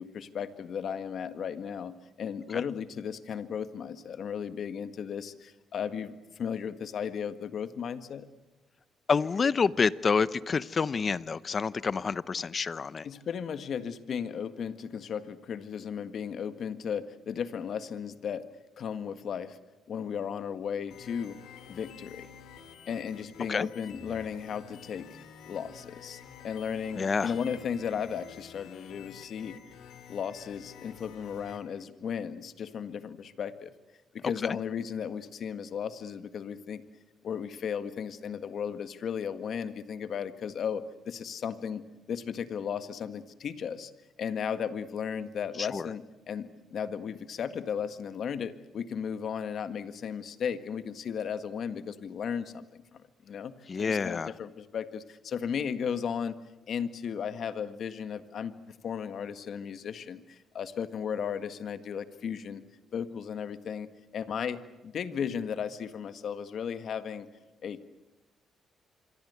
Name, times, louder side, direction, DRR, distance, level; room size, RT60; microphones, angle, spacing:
voice 1, 0.0-8.3 13.0-18.5 18.8-19.6 19.9-21.4 21.7-22.3 22.9-25.2 25.5-29.6 30.1-33.7 34.1-36.8 37.2-41.8 42.1-43.9 44.2-53.5 53.8-56.4 56.7-58.6 58.8-62.6 62.9-63.9 64.1-67.3 67.6-67.9, left 7 dB, 60° left, 11 dB, 1.7 m, -35 dB
voice 2, 9.1-13.1 23.5-23.7 27.0-27.3 34.4-34.6 45.6-45.9 53.7-54.3, left 5 dB, 40° left, 18 dB, 0.8 m, -28 dB
sound 1, 20.9-31.6, left 8 dB, 80° left, 3.1 m, -50 dB
26.0 x 24.0 x 8.2 m, 1.0 s
cardioid pair, 90°, 0 cm